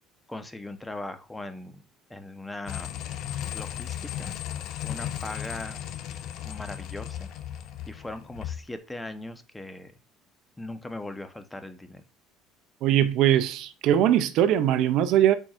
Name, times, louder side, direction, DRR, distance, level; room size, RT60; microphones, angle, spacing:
voice 1, 0.3-1.8 2.1-3.0 3.5-4.4 4.8-5.8 6.4-7.3 7.9-9.9 10.6-12.0, left 2 dB, 10° left, 0.9 m, -39 dB
sound 1, 2.7-8.6, left 11 dB, 65° left, 0.9 m, -35 dB
voice 2, 12.8-15.3, right 11 dB, 65° right, 0.5 m, -21 dB
8.5 x 4.5 x 2.5 m
supercardioid pair, 85°, 0 cm